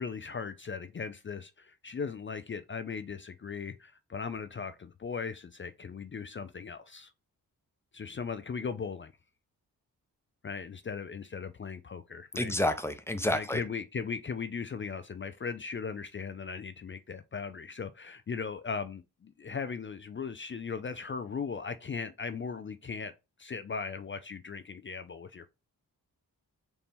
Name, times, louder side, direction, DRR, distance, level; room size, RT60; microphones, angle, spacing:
voice 1, 0.0-7.1 7.9-9.1 10.4-12.5 13.3-23.1 23.4-25.5, left 5 dB, 30° left, 0.4 m, -38 dB
voice 2, 12.4-13.6, left 1 dB, 5° left, 0.8 m, -29 dB
4.1 x 2.8 x 3.5 m
cardioid pair, 45°, 38 cm